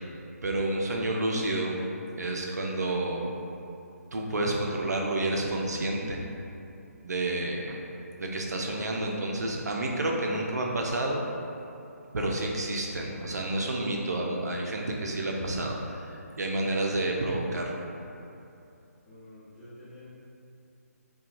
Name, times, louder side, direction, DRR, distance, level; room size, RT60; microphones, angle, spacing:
voice 1, 0.4-1.8 2.2-3.2 4.1-6.2 7.0-7.8 8.2-11.2 12.1-17.9, right 2 dB, 90° right, 0 dB, 0.4 m, -30 dB
voice 2, 19.0-20.0, left 1 dB, 10° left, -15 dB, 0.9 m, -48 dB
2.8 x 2.2 x 2.4 m, 2.7 s
hypercardioid pair, 155°, 9 cm